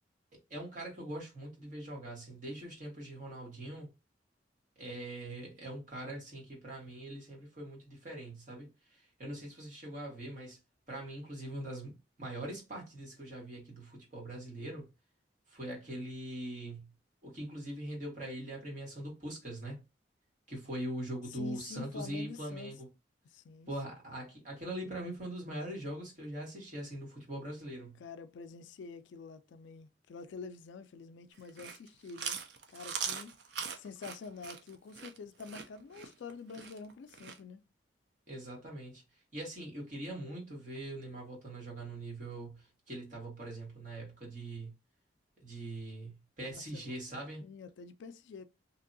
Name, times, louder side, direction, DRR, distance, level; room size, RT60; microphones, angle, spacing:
voice 1, 0.5-3.9 4.8-10.6 10.9-11.9 12.2-14.8 15.5-16.9 17.2-19.8 20.5-22.9 23.7-28.0 38.3-39.0 39.3-44.7 45.4-47.4, right 1 dB, 45° right, 1.5 m, -42 dB
voice 2, 21.3-22.7 23.3-24.0 28.0-32.4 32.7-33.4 33.7-37.6 46.4-47.0 47.4-48.5, left 4 dB, 80° left, 0.3 m, -47 dB
Chewing mastication, 31.4-37.4, right 6 dB, 65° right, 0.5 m, -41 dB
2.9 x 2.6 x 2.6 m
head